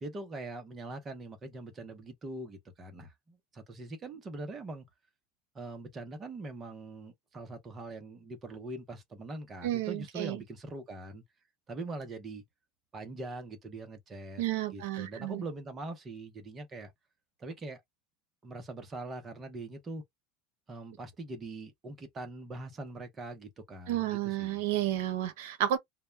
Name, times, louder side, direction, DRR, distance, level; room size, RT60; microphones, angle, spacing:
voice 1, 0.0-4.9 5.5-11.2 11.7-12.4 12.9-14.4 14.7-16.9 17.4-17.8 18.4-20.0 20.7-24.6, right 2 dB, 20° right, 0.6 m, -42 dB
voice 2, 9.6-10.4 14.4-15.4 23.9-25.8, right 12 dB, 75° right, 0.6 m, -31 dB
2.2 x 2.0 x 3.2 m
supercardioid pair, 165°, 0 cm